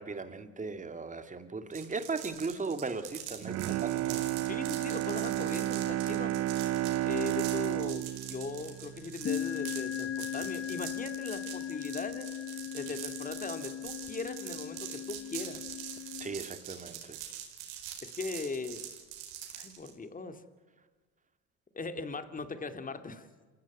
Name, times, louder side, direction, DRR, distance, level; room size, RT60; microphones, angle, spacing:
voice 1, 0.0-4.3 16.2-17.2, right 4 dB, 20° right, 2.3 m, -37 dB
sound 1, 1.7-19.9, right 11 dB, 80° right, 4.8 m, -44 dB
Bowed string instrument, 3.4-9.6 10.0-10.1, right 14 dB, 50° right, 0.7 m, -32 dB
voice 2, 4.4-6.4 7.1-12.3 12.5-15.6 18.0-18.8 19.5-20.4 21.7-23.3, left 3 dB, 25° left, 2.4 m, -39 dB
sound 2, 7.9-8.4 9.2-16.4, left 10 dB, 40° left, 1.3 m, -38 dB
28.0 x 16.5 x 9.5 m
supercardioid pair, 85°, 34 cm